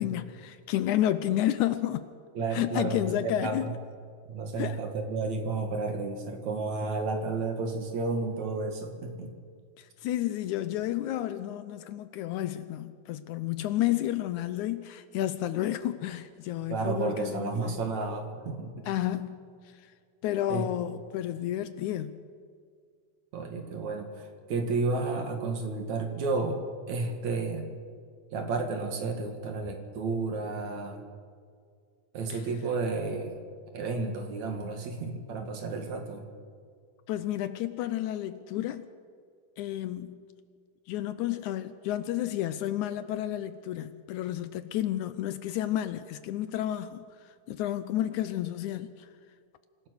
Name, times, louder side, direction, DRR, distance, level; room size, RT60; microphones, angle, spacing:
voice 1, 0.0-2.1 2.5-3.8 4.6-4.8 9.8-17.9 18.9-19.9 20.2-22.2 32.3-32.4 37.1-38.9 39.6-40.2 40.9-49.1, left 12 dB, 75° left, 2.0 m, -31 dB
voice 2, 2.4-3.7 4.3-9.3 16.7-18.9 20.5-20.7 23.3-26.6 26.9-27.7 28.3-31.0 32.1-33.4 33.7-36.2, right 3 dB, 60° right, 3.1 m, -32 dB
26.0 x 16.5 x 6.4 m
omnidirectional pair, 3.8 m